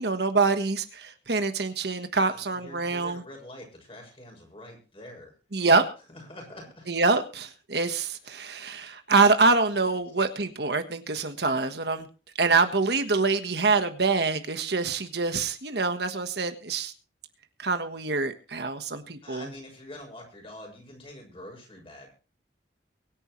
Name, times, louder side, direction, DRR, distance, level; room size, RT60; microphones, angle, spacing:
voice 1, 0.0-3.2 5.5-5.8 6.9-12.1 12.4-16.9 17.6-19.5, right 4 dB, 60° right, 8 dB, 1.4 m, -25 dB
voice 2, 2.3-5.3 6.1-6.9 19.2-22.1, left 1 dB, 30° left, 2 dB, 6.5 m, -45 dB
23.5 x 9.9 x 3.2 m, 0.35 s
head